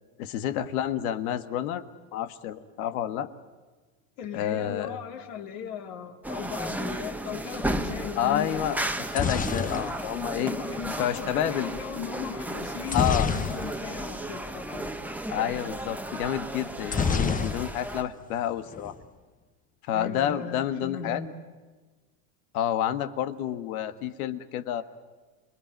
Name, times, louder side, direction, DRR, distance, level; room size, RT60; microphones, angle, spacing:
voice 1, 0.2-1.8 2.1-3.3 4.3-5.0 8.2-8.8 9.1-10.5 11.0-11.7 12.9-13.3 15.3-18.9 19.9-21.2 22.5-24.8, left 10 dB, 80° left, 11 dB, 1.7 m, -29 dB
voice 2, 4.2-8.6 9.5-9.7 10.4-14.9 19.9-21.3, left 8 dB, 65° left, 5 dB, 3.2 m, -38 dB
sound 1, 6.2-18.0, right 1 dB, 5° right, 1.3 m, -34 dB
sound 2, 8.9-10.9 12.9-14.0 14.3-14.5 14.7-14.9 16.9-18.0 18.3-18.9, left 5 dB, 20° left, 1.2 m, -28 dB
28.5 x 21.0 x 9.2 m, 1.3 s
supercardioid pair, 115°, 42 cm